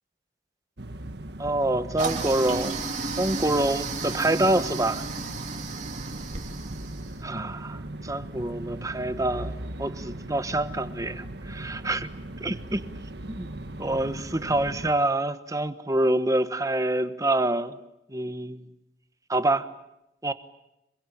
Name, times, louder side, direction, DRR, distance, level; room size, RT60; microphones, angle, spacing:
sound 1, 0.8-14.9, right 1 dB, 65° right, 1.6 m, -38 dB
voice 1, 1.4-2.7 3.2-5.1 7.2-9.5 9.8-12.1 12.4-12.8 13.4-13.5 13.8-17.7 18.1-18.6 19.3-19.6 20.2-20.3, right 1 dB, 20° right, 11 dB, 1.2 m, -26 dB
Toilet flush, 2.0-7.2, right 4 dB, 40° right, 3.1 m, -33 dB
26.0 x 23.0 x 9.1 m, 0.86 s
head